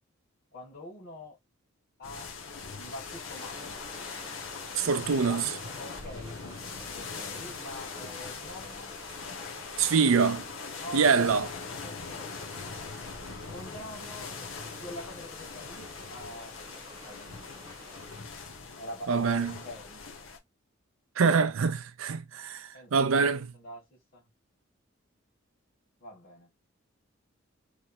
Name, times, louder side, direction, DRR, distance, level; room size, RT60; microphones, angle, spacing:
voice 1, 0.5-1.4 2.0-2.3 2.8-3.8 4.8-5.5 5.8-6.6 6.9-8.9 10.8-11.5 11.8-12.4 13.5-14.3 14.6-16.6 17.0-17.3 18.8-20.0 22.7-23.9 24.1-24.3 26.0-26.5, left 1 dB, 55° left, 2.2 m, -44 dB
sound 1, 2.0-20.4, left 4 dB, 75° left, 1.1 m, -41 dB
sound 2, 3.4-18.2, right 1 dB, 20° right, 1.2 m, -51 dB
voice 2, 4.7-5.5 9.8-10.5 10.9-11.5 19.1-19.6 21.2-23.5, right 5 dB, 85° right, 0.5 m, -25 dB
3.3 x 3.3 x 2.8 m
head